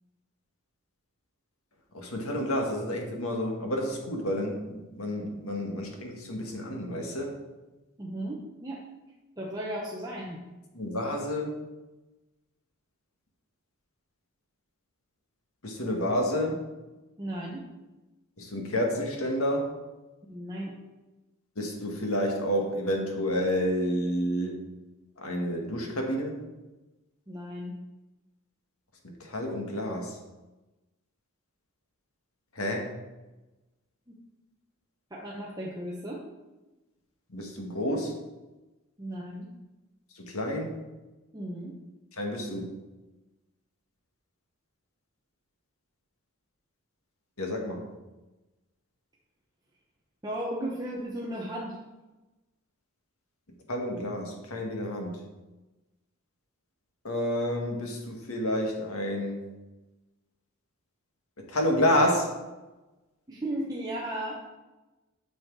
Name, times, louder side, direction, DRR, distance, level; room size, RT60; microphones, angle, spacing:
voice 1, 1.9-7.4 10.7-11.6 15.6-16.6 18.4-19.7 21.6-24.6 25.2-26.4 29.2-30.2 32.6-32.9 37.3-38.2 40.2-40.8 42.2-42.7 47.4-47.8 53.7-55.1 57.0-59.4 61.5-62.3, equal, 75° left, 1 dB, 1.9 m, -29 dB
voice 2, 8.0-8.8 9.4-10.4 17.2-17.7 20.3-20.7 27.3-27.8 34.1-34.2 35.1-36.2 39.0-39.5 41.3-41.7 50.2-51.8 63.3-64.5, right 1 dB, 15° right, -4 dB, 1.0 m, -35 dB
9.6 x 6.4 x 4.8 m, 1.1 s
head